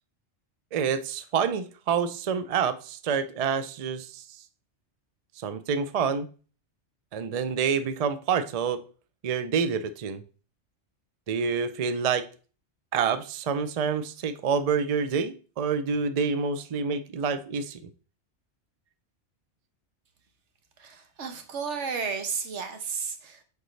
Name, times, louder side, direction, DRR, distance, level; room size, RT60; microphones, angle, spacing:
voice 1, 0.7-4.2 5.4-6.3 7.1-8.8 9.2-10.2 11.3-12.2 12.9-17.8, right 6 dB, 45° right, 11 dB, 0.5 m, -27 dB
voice 2, 20.8-23.4, right 5 dB, 85° right, 7 dB, 1.3 m, -33 dB
6.6 x 5.2 x 3.2 m, 0.38 s
omnidirectional pair, 1.2 m